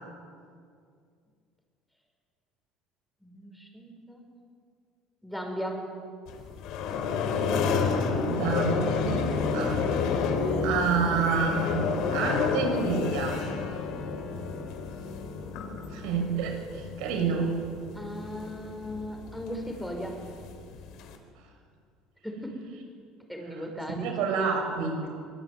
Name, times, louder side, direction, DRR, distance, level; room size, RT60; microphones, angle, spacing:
voice 1, 3.2-4.3 5.2-5.9 14.1-14.5 17.9-20.2 22.2-22.6 23.3-24.4, equal, ahead, 2 dB, 5.8 m, -37 dB
sound 1, 6.3-21.2, left 5 dB, 65° left, 4.0 m, -30 dB
voice 2, 8.2-9.8 10.1-10.2 10.6-13.4 15.9-17.5 23.5-25.1, right 5 dB, 80° right, 3 dB, 7.1 m, -29 dB
24.5 x 22.0 x 9.7 m, 2.3 s
cardioid pair, 130°, 0 cm